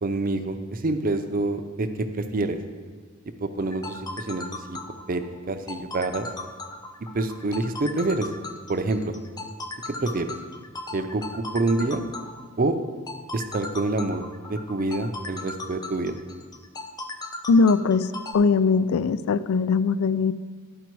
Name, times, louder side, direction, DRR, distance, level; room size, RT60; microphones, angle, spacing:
voice 1, 0.0-2.6 3.4-4.8 5.1-6.3 7.1-8.3 8.7-9.1 9.9-10.3 10.9-12.0 12.6-12.8 13.3-14.2 14.5-16.1, right 2 dB, 40° right, 8 dB, 0.5 m, -27 dB
sound 1, 3.6-18.3, left 2 dB, 20° left, 0.4 m, -37 dB
voice 2, 17.5-18.1 18.3-20.3, left 4 dB, 85° left, 15 dB, 0.4 m, -20 dB
12.0 x 5.0 x 4.6 m, 1.5 s
head